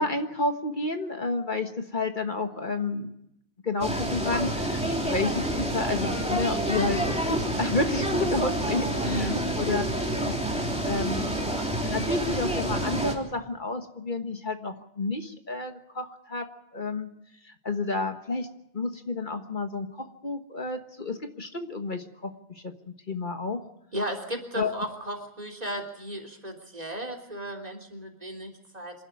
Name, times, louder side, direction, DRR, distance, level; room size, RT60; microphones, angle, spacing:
voice 1, 0.0-3.1 3.6-9.8 10.2-10.3 10.8-16.5 16.7-17.1 17.4-18.5 18.7-23.6 24.5-24.7, left 3 dB, 45° left, 6 dB, 1.6 m, -31 dB
sound 1, 3.8-13.1, right 1 dB, 5° right, 3.4 m, -28 dB
voice 2, 9.0-9.4 23.9-28.9, equal, 35° right, 4 dB, 3.5 m, -35 dB
27.0 x 12.0 x 9.6 m, 0.78 s
omnidirectional pair, 1.1 m